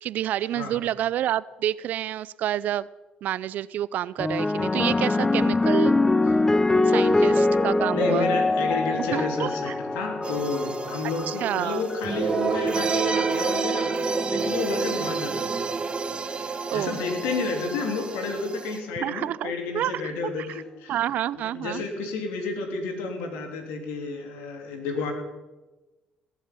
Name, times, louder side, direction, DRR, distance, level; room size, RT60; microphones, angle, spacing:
voice 1, 0.0-2.9 3.2-6.0 6.8-8.3 9.1-9.7 11.3-11.8 16.4-17.0 19.0-19.9 20.4-20.6 20.9-21.8, right 12 dB, 70° right, 20 dB, 0.5 m, -29 dB
sound 1, 4.2-12.8 13.7-14.1, left 2 dB, 15° left, 0.6 m, -24 dB
voice 2, 6.9-7.4 7.9-15.6 16.7-21.0 21.5-25.1, left 4 dB, 85° left, 2 dB, 3.4 m, -31 dB
sound 2, 10.2-18.8, right 4 dB, 35° right, 1.8 m, -29 dB
18.0 x 7.2 x 9.1 m, 1.1 s
supercardioid pair, 65°, 3 cm